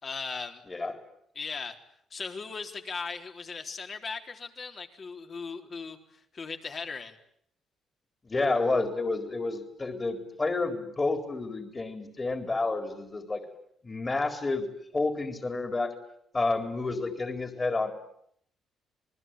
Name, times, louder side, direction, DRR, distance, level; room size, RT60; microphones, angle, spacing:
voice 1, 0.0-0.6 1.4-1.8 2.1-6.0 6.3-7.1, left 5 dB, 45° left, 4 dB, 3.9 m, -38 dB
voice 2, 0.7-1.0 8.2-13.4 13.8-14.7 14.9-15.9 16.3-17.9, left 3 dB, 25° left, 7 dB, 4.1 m, -30 dB
28.5 x 20.5 x 9.2 m, 0.69 s
cardioid pair, 90°, 0 cm